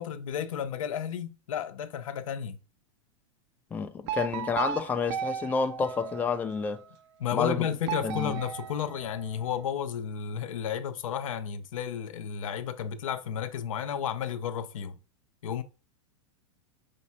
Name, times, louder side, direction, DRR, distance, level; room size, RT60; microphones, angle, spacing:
voice 1, 0.0-2.6 7.2-15.0 15.4-15.6, left 9 dB, 85° left, 0.6 m, -32 dB
voice 2, 3.7-6.8 7.3-7.7 8.0-8.3, left 5 dB, 10° left, 0.3 m, -29 dB
sound 1, 4.1-6.7 7.8-9.6, right 8 dB, 60° right, 0.4 m, -36 dB
5.2 x 2.4 x 4.1 m
hypercardioid pair, 130°, 17 cm